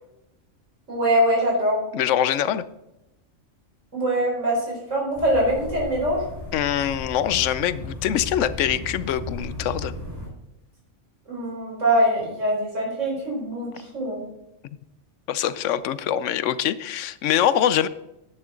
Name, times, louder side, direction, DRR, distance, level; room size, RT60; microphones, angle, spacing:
voice 1, 0.9-1.8 3.9-6.2 11.3-14.2, right 1 dB, 85° right, -3 dB, 4.5 m, -23 dB
voice 2, 1.9-2.6 6.5-9.9 15.3-17.9, left 10 dB, 80° left, 16 dB, 1.0 m, -23 dB
sound 1, 5.1-10.3, left 2 dB, 20° right, 4.1 m, -35 dB
10.5 x 10.5 x 3.8 m, 0.90 s
omnidirectional pair, 1.3 m